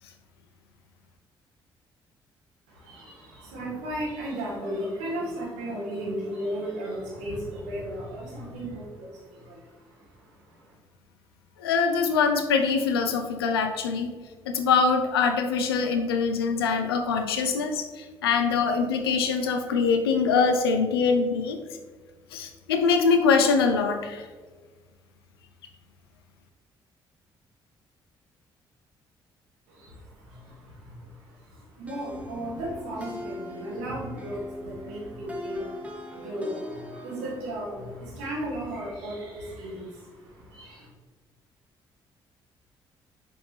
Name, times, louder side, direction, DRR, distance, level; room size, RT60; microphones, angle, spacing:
voice 1, 2.7-10.7 29.7-40.9, right 1 dB, 70° right, -4 dB, 2.0 m, -35 dB
voice 2, 11.6-14.1 14.5-21.6 22.3-24.3, left 5 dB, 80° left, 6 dB, 0.6 m, -23 dB
sound 1, 31.9-37.7, left 1 dB, 10° right, 1.5 m, -41 dB
6.9 x 5.4 x 3.4 m, 1.4 s
figure-of-eight pair, 45°, 13 cm